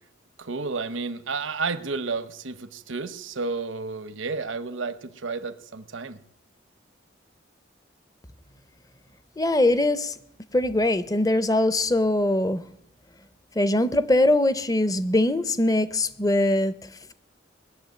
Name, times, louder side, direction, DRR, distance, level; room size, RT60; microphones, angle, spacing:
voice 1, 0.4-6.2, right 4 dB, 85° right, 12 dB, 0.9 m, -31 dB
voice 2, 9.4-10.1 10.5-12.6 13.6-16.7, left 1 dB, 20° left, 14 dB, 0.6 m, -22 dB
20.0 x 7.1 x 9.5 m, 0.76 s
head